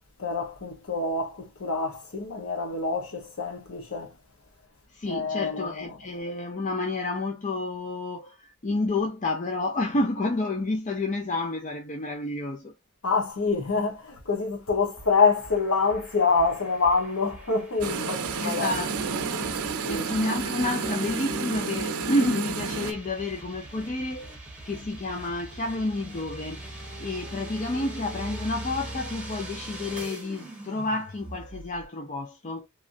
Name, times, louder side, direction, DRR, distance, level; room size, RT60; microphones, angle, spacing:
voice 1, 0.2-4.1 5.1-6.0 13.0-18.7 19.3-19.4 19.8-20.0, left 4 dB, 75° left, 1.0 m, -26 dB
voice 2, 4.9-12.7 18.4-19.0 19.9-24.3 24.7-26.6 27.0-32.7, left 2 dB, 35° left, 0.6 m, -30 dB
sound 1, 15.0-31.9, right 1 dB, 5° right, 1.0 m, -42 dB
sound 2, 17.8-22.9, right 5 dB, 85° right, 0.6 m, -30 dB
3.2 x 2.5 x 2.5 m
head